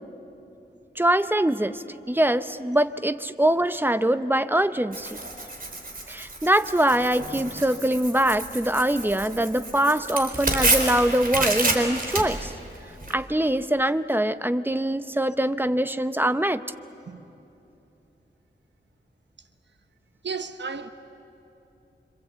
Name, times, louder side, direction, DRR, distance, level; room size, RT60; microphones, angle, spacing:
voice 1, 1.0-5.2 6.1-12.5 13.1-16.6, right 1 dB, 10° right, 0.8 m, -23 dB
Tearing, 4.9-13.1, right 2 dB, 50° right, 4.0 m, -29 dB
voice 2, 20.2-20.9, right 5 dB, 70° right, 1.0 m, -33 dB
26.5 x 26.0 x 8.2 m
wide cardioid pair, 75°, 19 cm